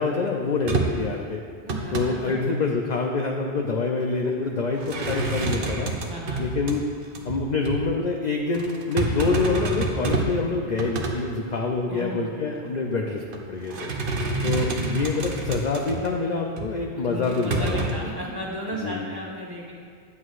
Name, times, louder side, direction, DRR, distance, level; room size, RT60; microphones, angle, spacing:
voice 1, 0.0-1.4 1.9-5.9 6.4-6.9 7.2-13.2 13.5-13.9 14.4-17.9 18.7-19.1, left 4 dB, 55° left, 1 dB, 0.5 m, -26 dB
sound 1, 0.6-1.1 1.5-2.1 4.7-6.8 7.1-7.4 7.6-7.8 8.5-10.4 10.7-11.2 11.7-11.8 13.1-13.4 13.7-16.1 16.6-16.7 17.2-17.9, right 3 dB, 55° right, 0.9 m, -28 dB
voice 2, 1.6-2.3 6.1-6.4 11.9-12.2 17.0-19.7, equal, 20° right, -5 dB, 1.1 m, -34 dB
9.6 x 8.0 x 2.5 m, 2.1 s
omnidirectional pair, 1.1 m